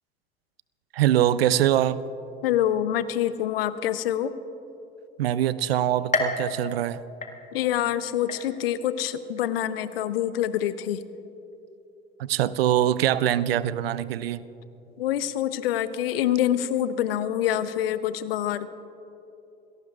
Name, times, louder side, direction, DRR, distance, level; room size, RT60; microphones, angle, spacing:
voice 1, 0.9-2.0 5.2-7.0 12.2-14.4, right 12 dB, 80° right, 18 dB, 0.5 m, -23 dB
voice 2, 2.4-4.3 7.5-11.0 15.0-18.7, left 11 dB, 75° left, 14 dB, 0.7 m, -26 dB
sound 1, 6.1-7.8 8.3-8.9 9.4-9.5 10.4-10.5, left 3 dB, 25° left, 1.8 m, -31 dB
27.5 x 17.5 x 2.5 m, 2.8 s
hypercardioid pair, 70°, 30 cm